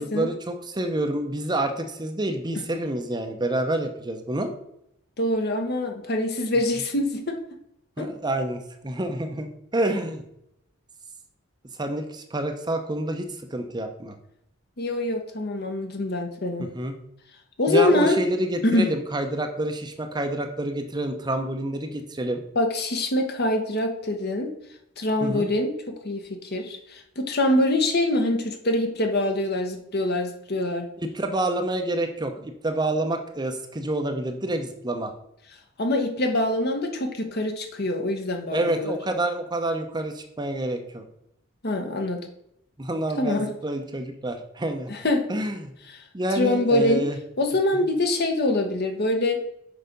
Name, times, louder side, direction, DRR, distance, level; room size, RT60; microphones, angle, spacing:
voice 1, 0.0-4.5 8.0-10.2 11.8-14.2 16.7-17.0 17.7-22.4 25.2-25.5 31.0-35.1 38.5-41.0 42.8-44.9 45.3-45.7 46.1-47.2 47.7-47.8, right 1 dB, 20° right, 6 dB, 0.7 m, -28 dB
voice 2, 5.2-7.4 8.0-8.1 14.8-16.7 17.6-18.2 18.6-18.9 22.5-24.5 25.0-30.9 35.8-39.0 41.6-42.2 43.2-43.5 44.9-45.2 46.3-47.0 47.4-49.4, left 1 dB, 50° left, 5 dB, 1.1 m, -24 dB
6.6 x 4.9 x 5.2 m, 0.77 s
head